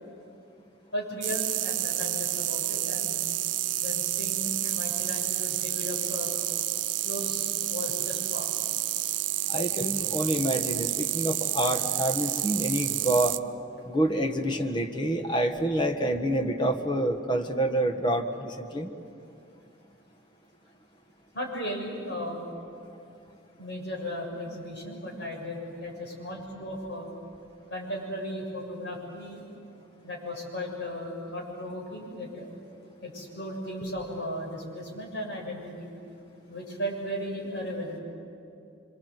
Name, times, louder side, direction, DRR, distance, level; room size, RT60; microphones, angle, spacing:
voice 1, 0.9-3.2 3.8-6.3 7.0-8.5 9.8-9.9 21.3-22.4 23.6-27.1 27.7-29.4 30.0-32.5 33.0-35.9 36.5-38.0, equal, 70° left, -1 dB, 7.2 m, -36 dB
sound 1, 1.2-13.4, right 14 dB, 85° right, 0.7 m, -29 dB
voice 2, 9.5-13.4 13.8-18.9, right 1 dB, 25° left, 4 dB, 1.6 m, -27 dB
26.0 x 26.0 x 8.2 m, 2.6 s
head